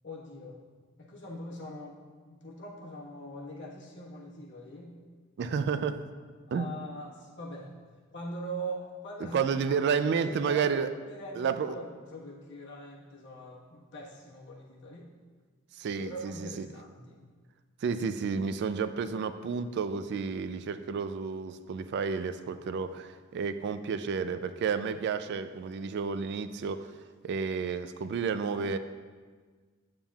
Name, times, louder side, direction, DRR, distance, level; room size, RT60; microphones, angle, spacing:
voice 1, 0.0-0.6 1.0-2.0 2.2-5.0 6.5-7.7 8.1-9.4 9.7-9.9 10.2-10.7 11.1-15.1 16.0-17.2, right 1 dB, 60° left, -3 dB, 1.3 m, -42 dB
voice 2, 5.4-6.0 6.5-6.8 9.3-10.9 11.3-11.8 15.8-16.7 17.8-26.9 27.2-28.8, right 6 dB, 55° right, 11 dB, 0.3 m, -31 dB
8.6 x 7.2 x 2.3 m, 1.5 s
head